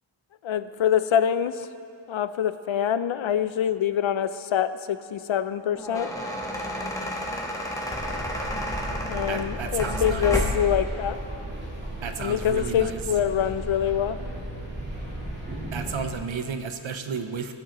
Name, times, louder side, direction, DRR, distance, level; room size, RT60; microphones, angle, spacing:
voice 1, 0.4-1.7 2.1-6.1 9.1-11.2 12.2-14.2, left 9 dB, 80° left, 13 dB, 0.5 m, -25 dB
sound 1, 5.6-10.8, left 1 dB, 5° left, 1.1 m, -31 dB
sound 2, 7.9-16.1, right 1 dB, 25° right, 2.2 m, -35 dB
voice 2, 9.3-10.3 12.0-13.0 15.7-17.5, right 6 dB, 80° right, 8 dB, 0.8 m, -32 dB
18.5 x 7.6 x 3.0 m, 2.8 s
wide cardioid pair, 115°, 46 cm